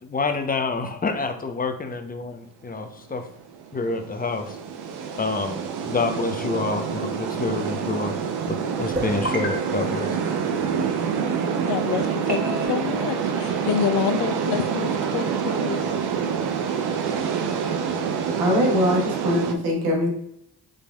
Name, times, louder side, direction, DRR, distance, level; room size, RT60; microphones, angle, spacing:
voice 1, 0.0-3.3 3.7-4.6 5.1-5.6 5.8-8.2 8.5-10.2, left 3 dB, 20° left, 7 dB, 0.7 m, -27 dB
sound 1, 3.3-19.5, right 6 dB, 65° right, 0.7 m, -27 dB
sound 2, 8.9-11.1 12.3-12.7, right 1 dB, 20° right, 1.5 m, -32 dB
voice 2, 11.7-15.9, left 9 dB, 70° left, 11 dB, 0.5 m, -27 dB
voice 3, 18.4-20.1, equal, 90° right, -1 dB, 1.2 m, -22 dB
5.3 x 3.3 x 2.2 m, 0.76 s
hypercardioid pair, 45°, 42 cm